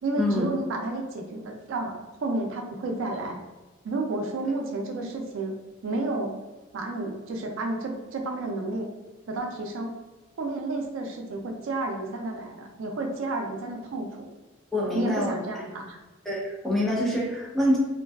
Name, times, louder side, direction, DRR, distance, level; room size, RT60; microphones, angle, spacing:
voice 1, 0.0-3.4 3.8-5.5 5.8-6.4 6.7-8.9 9.3-9.9 10.4-14.3 14.9-16.0, right 2 dB, 70° right, 2 dB, 0.4 m, -31 dB
voice 2, 14.7-15.3 16.3-17.8, left 1 dB, ahead, -6 dB, 0.6 m, -25 dB
2.5 x 2.2 x 2.3 m, 1.2 s
head